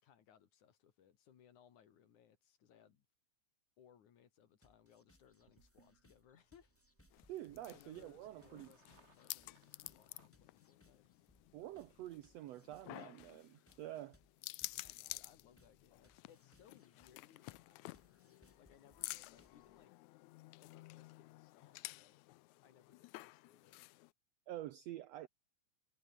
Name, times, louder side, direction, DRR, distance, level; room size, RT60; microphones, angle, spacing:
voice 1, 0.0-3.1 3.8-6.7 7.1-7.3 7.7-11.1 14.7-19.9 20.6-22.2 22.6-23.9, left 9 dB, 65° left, 3.4 m, -67 dB
sound 1, 4.6-19.9, left 1 dB, 5° left, 1.3 m, -72 dB
sound 2, 5.2-10.3, right 4 dB, 25° right, 1.5 m, -72 dB
sound 3, 7.1-24.1, left 20 dB, 85° left, 1.6 m, -52 dB
voice 2, 7.3-8.7 11.5-14.2 24.5-25.3, right 14 dB, 85° right, 1.5 m, -48 dB
omnidirectional pair, 3.9 m